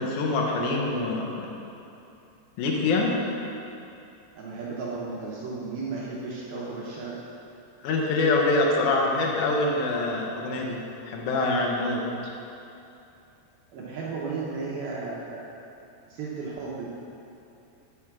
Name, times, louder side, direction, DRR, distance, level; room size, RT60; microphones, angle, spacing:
voice 1, 0.0-1.5 2.6-3.1 7.8-12.0, left 2 dB, 80° left, -1 dB, 1.7 m, -25 dB
voice 2, 0.6-0.9 4.4-7.2 13.7-15.5 16.1-16.9, right 4 dB, 75° right, -5 dB, 2.5 m, -34 dB
10.0 x 4.9 x 6.0 m, 2.8 s
omnidirectional pair, 4.9 m